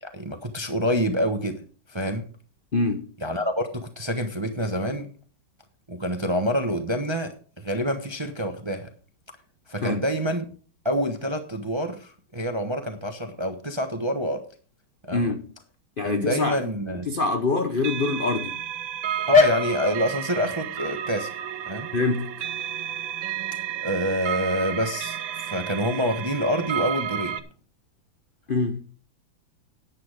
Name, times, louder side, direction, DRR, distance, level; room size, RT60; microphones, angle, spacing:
voice 1, 0.0-1.6 1.9-2.2 3.2-5.1 5.9-8.9 9.7-10.5 10.8-14.4 15.0-15.2 16.0-17.1 19.3-21.3 21.7-21.9 23.8-27.4, left 1 dB, 20° right, 0.7 m, -26 dB
voice 2, 2.7-3.1 9.8-10.0 15.1-15.5 16.0-16.6 17.1-18.6 21.9-22.5 28.5-28.8, left 3 dB, 50° left, 0.6 m, -25 dB
End of an Era, 17.8-27.4, right 10 dB, 75° right, 1.6 m, -32 dB
10.5 x 8.6 x 4.9 m
omnidirectional pair, 2.2 m